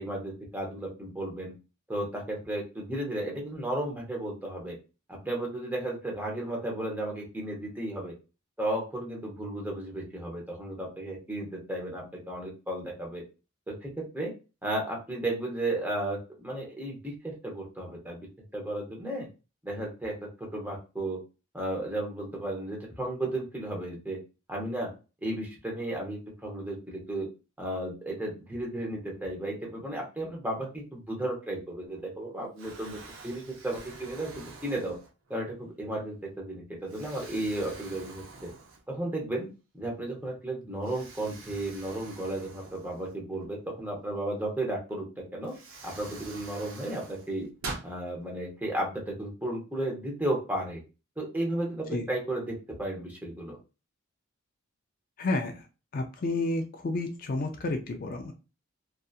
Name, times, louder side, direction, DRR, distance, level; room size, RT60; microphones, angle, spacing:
voice 1, 0.0-1.5 1.9-4.8 5.1-8.1 8.6-13.2 13.7-14.3 14.6-18.3 18.5-19.3 19.6-21.2 21.5-24.2 24.5-24.9 25.2-27.3 27.6-33.0 33.2-34.9 35.3-38.5 38.9-39.5 39.7-45.5 45.8-47.5 47.8-50.8 51.2-53.6, right 1 dB, 10° right, -2 dB, 0.8 m, -34 dB
Explosion, 31.9-32.2 32.6-35.4 36.0-36.2 36.9-39.1 39.5-39.6 40.8-43.5 44.9-45.0 45.4-47.9, right 3 dB, 75° right, 0.6 m, -45 dB
voice 2, 55.2-55.7 55.9-58.3, left 2 dB, 45° left, 4 dB, 0.4 m, -31 dB
2.7 x 2.4 x 2.4 m, 0.31 s
head